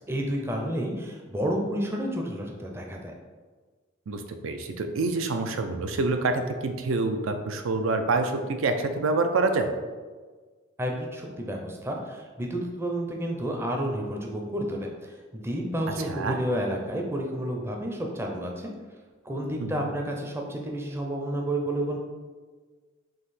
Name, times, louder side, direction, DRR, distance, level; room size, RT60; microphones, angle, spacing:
voice 1, 0.1-3.1 10.8-18.7 19.2-22.0, right 1 dB, 10° right, 1 dB, 0.5 m, -30 dB
voice 2, 4.1-9.7 16.1-16.4 19.6-19.9, right 3 dB, 85° right, 7 dB, 0.5 m, -27 dB
3.8 x 2.8 x 4.1 m, 1.4 s
head